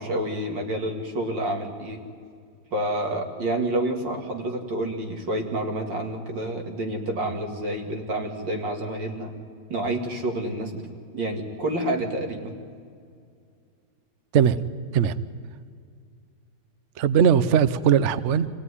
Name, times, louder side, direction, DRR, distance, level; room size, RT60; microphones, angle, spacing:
voice 1, 0.0-2.0 2.7-9.3 9.7-10.8 11.1-12.6, right 1 dB, 90° right, 2 dB, 3.0 m, -28 dB
voice 2, 17.0-18.5, right 8 dB, 55° right, 14 dB, 0.8 m, -19 dB
25.5 x 17.0 x 9.8 m, 2.2 s
omnidirectional pair, 1.9 m